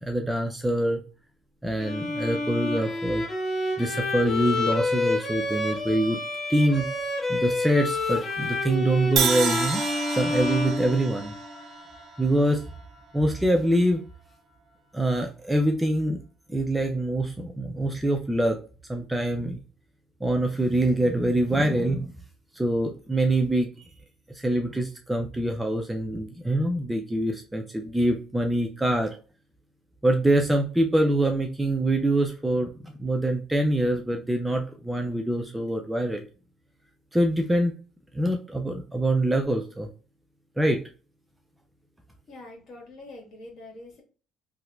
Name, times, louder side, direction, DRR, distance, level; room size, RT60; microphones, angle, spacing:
voice 1, 0.0-1.0 1.6-3.2 3.8-6.2 6.5-6.8 7.3-9.8 10.1-11.3 12.2-12.6 13.1-14.0 14.9-16.2 16.5-18.6 18.9-19.6 20.2-22.1 22.5-23.7 24.3-29.2 30.0-36.2 37.1-37.7 38.1-39.9 40.6-40.8, right 1 dB, 10° right, 4 dB, 0.5 m, -24 dB
Bowed string instrument, 1.8-11.5, left 2 dB, 40° left, 1.0 m, -29 dB
Crash cymbal, 9.2-13.2, right 5 dB, 50° right, 0.8 m, -30 dB
voice 2, 42.3-44.0, left 2 dB, 55° left, 1 dB, 1.6 m, -44 dB
2.8 x 2.5 x 3.2 m, 0.36 s
supercardioid pair, 90°, 0 cm